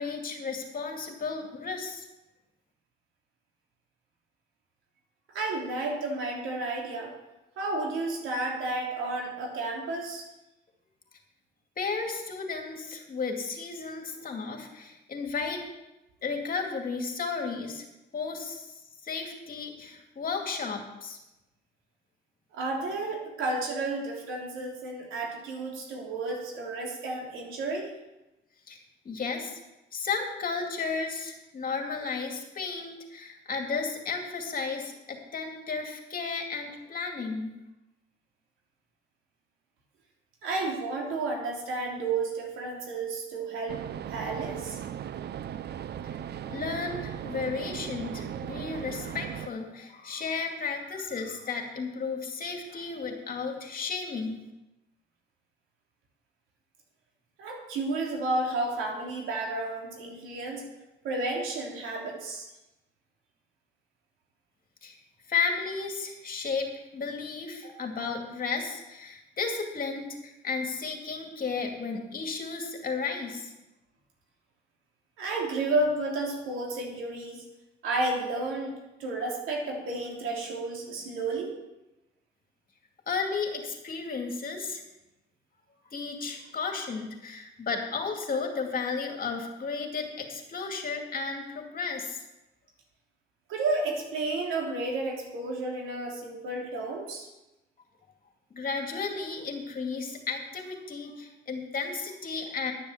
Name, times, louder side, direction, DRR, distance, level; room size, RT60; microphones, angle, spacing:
voice 1, 0.0-2.1 11.8-15.6 16.2-17.8 18.1-21.2 28.7-29.6 29.9-37.5 46.1-46.2 46.4-54.4 64.8-65.0 65.3-73.5 83.1-84.8 85.9-92.2 98.5-102.7, left 4 dB, 45° left, 3 dB, 2.4 m, -33 dB
voice 2, 5.3-7.1 7.6-10.2 22.5-27.9 40.4-43.8 44.1-44.8 57.4-60.6 61.0-62.4 67.6-67.7 75.2-77.4 77.8-81.5 93.5-97.3, right 2 dB, 90° right, -1 dB, 3.1 m, -32 dB
sound 1, 43.7-49.5, right 10 dB, 55° right, 0.5 m, -37 dB
11.5 x 7.0 x 7.3 m, 0.98 s
cardioid pair, 90°, 20 cm